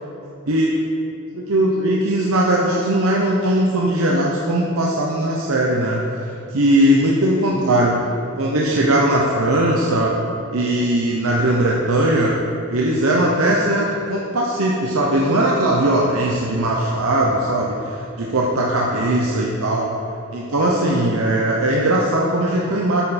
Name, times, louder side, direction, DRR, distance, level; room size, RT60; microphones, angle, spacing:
voice 1, 1.3-6.0 6.5-8.0 8.4-10.1 10.5-12.3 12.7-19.9 20.3-23.0, right 1 dB, 65° right, -3 dB, 0.8 m, -19 dB
9.2 x 6.7 x 4.2 m, 2.6 s
head